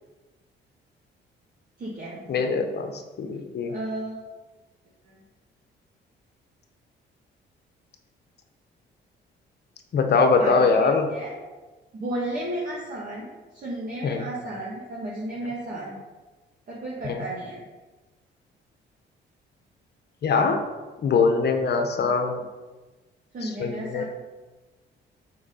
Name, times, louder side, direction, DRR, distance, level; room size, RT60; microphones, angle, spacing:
voice 1, 1.8-2.2 3.7-4.2 5.0-5.2 10.4-11.3 11.9-13.3 13.5-16.0 16.7-17.6 23.3-24.0, right 1 dB, 45° right, -6 dB, 1.8 m, -33 dB
voice 2, 2.3-3.7 9.9-11.1 14.0-14.2 17.0-17.2 20.2-20.6 21.0-22.4 23.4-24.0, left 4 dB, 55° left, 6 dB, 1.0 m, -22 dB
6.2 x 4.7 x 5.6 m, 1.2 s
cardioid pair, 90°, 20 cm